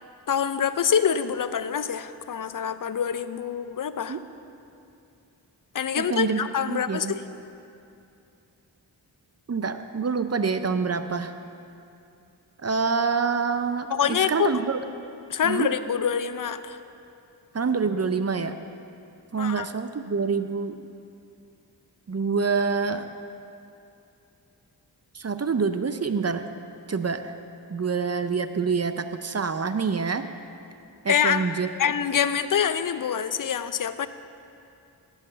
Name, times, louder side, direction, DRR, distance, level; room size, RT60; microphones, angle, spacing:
voice 1, 0.3-4.2 5.7-7.2 13.9-14.5 15.3-16.8 19.4-19.7 31.1-31.5 31.8-34.1, left 8 dB, 50° left, 12 dB, 0.5 m, -25 dB
voice 2, 5.9-6.4 6.7-7.1 9.5-11.3 12.6-14.8 15.4-15.7 17.5-18.6 19.3-20.8 22.1-23.0 25.1-26.5 26.9-27.3 27.7-30.3 31.0-31.7, right 5 dB, 35° right, 10 dB, 0.5 m, -26 dB
10.5 x 5.8 x 8.4 m, 2.6 s
cardioid pair, 55°, 42 cm